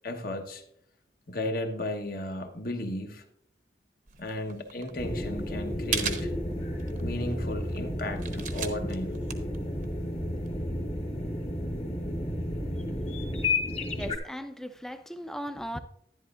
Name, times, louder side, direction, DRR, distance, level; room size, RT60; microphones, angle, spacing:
voice 1, 0.0-0.6 1.3-3.2 4.2-6.3 7.0-9.2, left 1 dB, 55° left, 1.1 m, -34 dB
sound 1, 4.1-10.5, right 7 dB, 45° right, 0.8 m, -38 dB
sound 2, 5.0-14.2, left 1 dB, 35° left, 1.2 m, -32 dB
voice 2, 14.0-15.8, equal, 5° left, 0.5 m, -37 dB
11.0 x 10.5 x 2.5 m
head